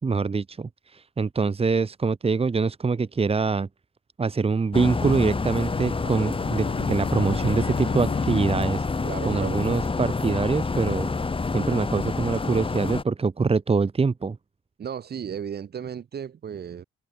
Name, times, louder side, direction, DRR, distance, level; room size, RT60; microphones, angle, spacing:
voice 1, 0.0-3.7 4.2-8.9 9.2-11.1 11.5-14.4, right 4 dB, 30° right, 2.5 m, -24 dB
sound 1, 4.7-13.0, left 4 dB, 25° left, 4.8 m, -27 dB
Bowed string instrument, 5.3-8.9, left 11 dB, 75° left, 7.8 m, -37 dB
voice 2, 9.0-9.6 14.8-16.8, right 8 dB, 55° right, 6.1 m, -34 dB
cardioid pair, 90°, 20 cm